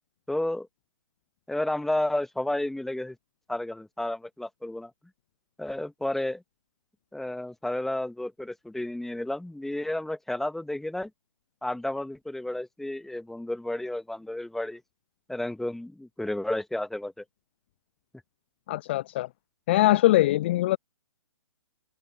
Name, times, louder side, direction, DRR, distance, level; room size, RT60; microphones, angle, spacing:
voice 1, 0.3-0.7 1.5-3.2 3.5-4.9 5.6-6.4 7.1-11.1 11.6-14.8 15.3-17.2, left 1 dB, ahead, 1.6 m, -31 dB
voice 2, 18.7-19.3 19.7-20.8, left 16 dB, 20° left, 0.3 m, -22 dB
figure-of-eight pair, 135°, 17 cm